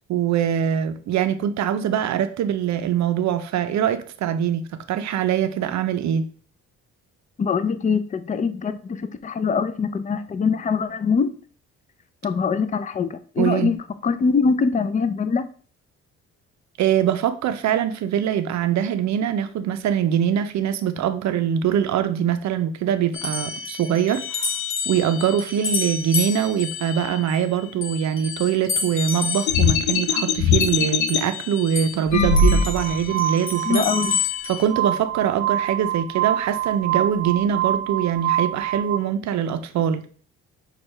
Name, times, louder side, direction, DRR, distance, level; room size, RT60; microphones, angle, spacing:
voice 1, 0.1-4.6 4.9-6.3 13.4-13.7 16.8-24.5 24.9-33.9 34.5-40.1, right 9 dB, 65° right, 0.5 m, -23 dB
voice 2, 7.4-11.3 12.2-13.8 14.0-15.4 33.7-34.2, left 5 dB, 25° left, 0.4 m, -23 dB
sound 1, 23.1-32.1 32.4-34.7, left 6 dB, 40° left, 0.9 m, -30 dB
rotating-menu-sub-hit-at-end, 29.5-31.2 32.1-33.0, left 4 dB, 65° left, 0.6 m, -20 dB
Glass, 32.2-39.0, right 11 dB, 5° left, 2.3 m, -26 dB
6.1 x 2.4 x 3.2 m
cardioid pair, 90°, 30 cm